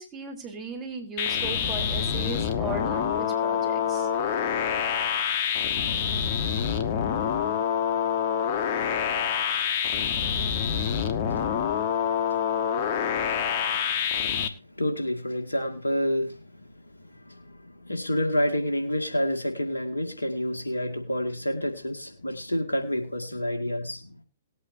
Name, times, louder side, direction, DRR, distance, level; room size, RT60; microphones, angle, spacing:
voice 1, 0.0-4.1, right 4 dB, 20° right, 3.8 m, -37 dB
sound 1, 1.2-14.5, left 8 dB, 45° left, 1.4 m, -26 dB
voice 2, 14.8-16.4 17.9-24.1, equal, 90° left, 2.1 m, -28 dB
20.0 x 8.6 x 2.7 m
figure-of-eight pair, 115°, 0 cm